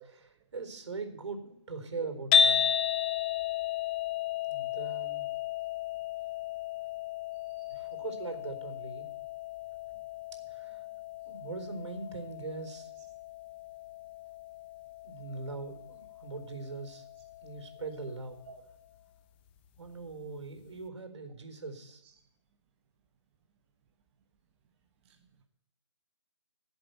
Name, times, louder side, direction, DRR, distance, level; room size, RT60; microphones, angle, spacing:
voice 1, 0.0-2.6 4.4-5.3 7.7-9.1 10.5-10.8 11.3-12.9 15.0-17.1 17.4-18.4 19.8-22.0, right 3 dB, 70° right, 7 dB, 4.1 m, -41 dB
sound 1, 2.3-18.5, left 8 dB, 20° left, 0.7 m, -34 dB
voice 2, 7.3-7.8 9.9-10.0 18.5-18.6 22.0-22.1 25.0-25.4, right 8 dB, 20° right, 1 dB, 1.4 m, -53 dB
17.0 x 7.8 x 8.1 m, 0.73 s
hypercardioid pair, 155°, 16 cm